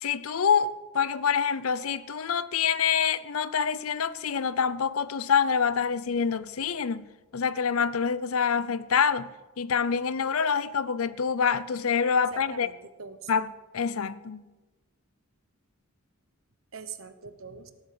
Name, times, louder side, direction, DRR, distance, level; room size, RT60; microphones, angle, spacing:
voice 1, 0.0-7.1 7.3-9.3 9.6-12.7 13.3-14.5, left 6 dB, 80° left, 0.6 m, -26 dB
voice 2, 12.2-13.3 16.7-17.7, right 6 dB, 70° right, 1.1 m, -43 dB
18.0 x 8.0 x 6.8 m
head